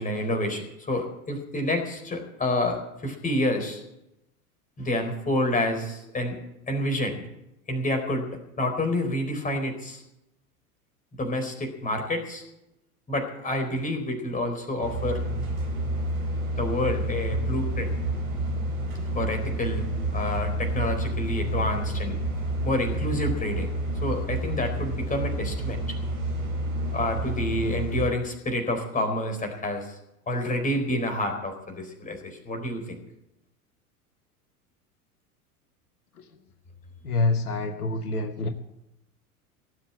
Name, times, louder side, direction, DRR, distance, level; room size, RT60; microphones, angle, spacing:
voice 1, 0.0-3.8 4.8-6.4 6.7-7.2 7.7-8.3 8.6-10.0 11.2-12.4 13.1-15.2 16.6-17.9 19.2-19.9 20.1-22.2 22.6-23.7 24.0-25.8 26.9-29.9 30.3-33.0, left 1 dB, 15° left, 4 dB, 4.1 m, -28 dB
sound 1, 14.8-28.1, right 1 dB, 70° right, 4.4 m, -29 dB
voice 2, 37.0-38.5, left 3 dB, 75° left, 7 dB, 1.4 m, -26 dB
18.0 x 7.8 x 8.8 m, 0.87 s
figure-of-eight pair, 80°, 45 cm